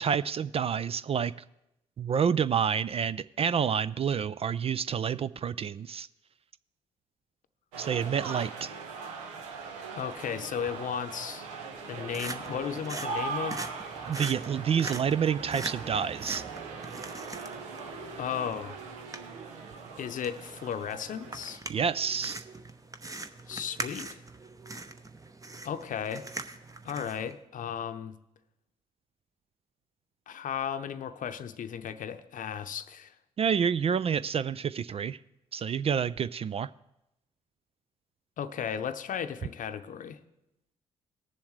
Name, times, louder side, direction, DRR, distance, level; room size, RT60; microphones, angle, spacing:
voice 1, 0.0-1.3 2.0-6.1 7.8-8.7 14.1-16.4 21.7-22.4 33.4-35.2 35.5-36.7, right 7 dB, 35° right, 16 dB, 0.4 m, -28 dB
sound 1, 7.7-21.6, right 4 dB, 80° right, 0.9 m, -40 dB
voice 2, 10.0-11.5 11.9-13.7 18.2-18.8 20.0-21.6 23.5-24.2 25.6-26.2 26.8-28.2 30.3-33.2 38.4-40.2, left 8 dB, 50° left, 9 dB, 0.8 m, -35 dB
sound 2, 11.7-27.3, right 2 dB, 20° right, 0.9 m, -42 dB
19.0 x 7.1 x 3.2 m, 0.86 s
hypercardioid pair, 45°, 17 cm